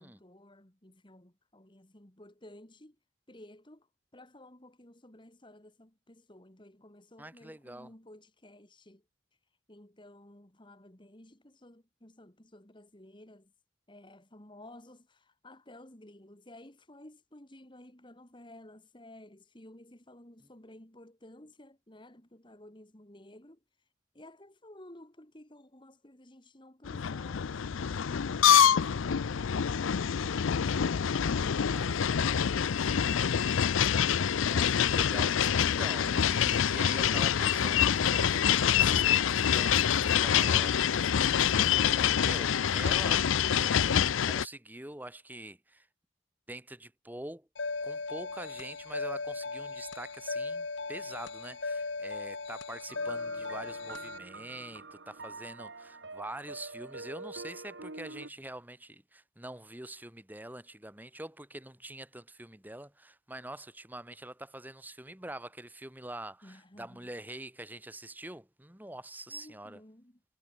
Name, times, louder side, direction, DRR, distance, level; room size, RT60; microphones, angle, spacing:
voice 1, 0.0-3.0 3.3-9.1 9.7-13.5 13.9-23.6 24.1-33.8 66.4-67.1 69.3-70.2, left 1 dB, 25° left, 2.1 m, -54 dB
voice 2, 7.2-7.9 31.6-32.0 34.4-45.9 46.5-47.5 47.8-69.8, right 1 dB, 10° right, 2.1 m, -45 dB
sound 1, 26.9-44.5, left 8 dB, 85° left, 0.5 m, -26 dB
sound 2, 47.6-54.2, left 3 dB, 70° left, 1.7 m, -37 dB
sound 3, 52.9-58.3, right 3 dB, 65° right, 2.3 m, -45 dB
head